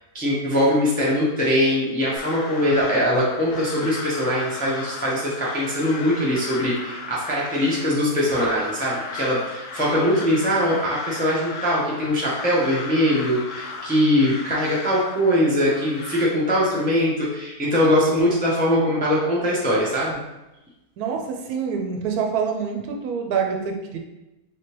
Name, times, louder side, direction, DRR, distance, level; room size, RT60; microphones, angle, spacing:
voice 1, 0.1-20.2, equal, 15° left, -6 dB, 0.3 m, -22 dB
Crow, 2.2-16.3, left 4 dB, 90° left, 1.2 m, -36 dB
voice 2, 21.0-24.0, right 6 dB, 75° right, 3 dB, 1.0 m, -26 dB
3.5 x 3.3 x 2.9 m, 0.99 s
omnidirectional pair, 1.7 m